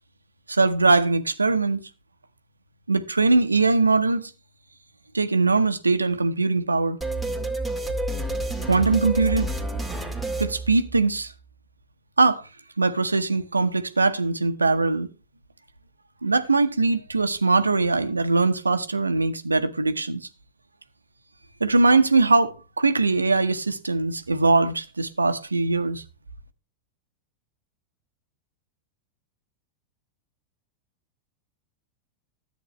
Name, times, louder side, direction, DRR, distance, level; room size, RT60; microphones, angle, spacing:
voice 1, 0.5-1.8 2.9-4.3 5.1-7.0 8.7-9.5 10.4-11.3 12.2-12.5 12.8-15.1 16.2-20.2 21.6-26.0, right 3 dB, 80° right, 0.9 m, -21 dB
sound 1, 7.0-11.3, right 1 dB, 5° left, 2.1 m, -29 dB
13.5 x 8.3 x 3.1 m
figure-of-eight pair, 90°, 0 cm